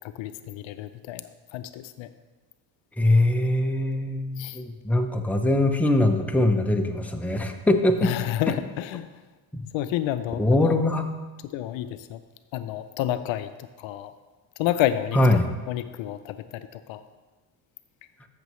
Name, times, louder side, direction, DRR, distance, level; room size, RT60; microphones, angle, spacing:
voice 1, 0.2-1.2 1.5-2.1 4.4-4.6 8.0-9.1 9.7-10.9 11.5-12.2 12.5-13.5 13.8-14.1 14.6-15.4 15.7-17.0, left 12 dB, 70° left, 11 dB, 0.6 m, -29 dB
voice 2, 3.0-8.1 9.5-9.7 10.4-11.1 15.1-15.5, left 1 dB, 5° left, 4 dB, 0.7 m, -22 dB
13.5 x 6.6 x 3.1 m, 1.3 s
supercardioid pair, 90°, 49 cm